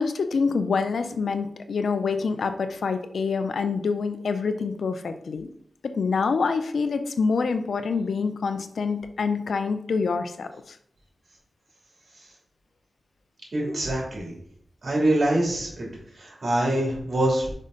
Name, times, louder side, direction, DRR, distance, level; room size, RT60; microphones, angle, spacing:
voice 1, 0.0-5.5 5.8-10.5, left 5 dB, 90° left, 9 dB, 0.5 m, -26 dB
voice 2, 13.5-14.3 14.8-15.9 16.2-17.5, right 1 dB, 65° right, -3 dB, 2.7 m, -24 dB
5.4 x 5.3 x 3.8 m, 0.67 s
cardioid pair, 55°, 0 cm